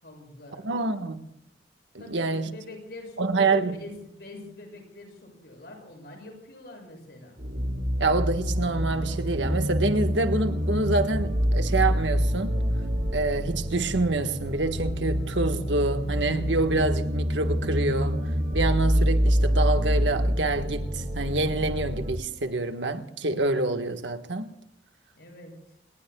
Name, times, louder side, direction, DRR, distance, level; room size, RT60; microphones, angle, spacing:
voice 1, 0.0-0.7 2.0-7.4 25.2-25.5, left 2 dB, 60° left, 7.5 m, -45 dB
voice 2, 0.6-1.2 1.9-2.5 3.2-3.8 8.0-12.6 13.1-18.2 18.5-24.5, right 2 dB, 80° right, 1.6 m, -27 dB
sound 1, 7.4-22.1, equal, 55° right, 4.9 m, -26 dB
28.5 x 20.0 x 2.4 m
head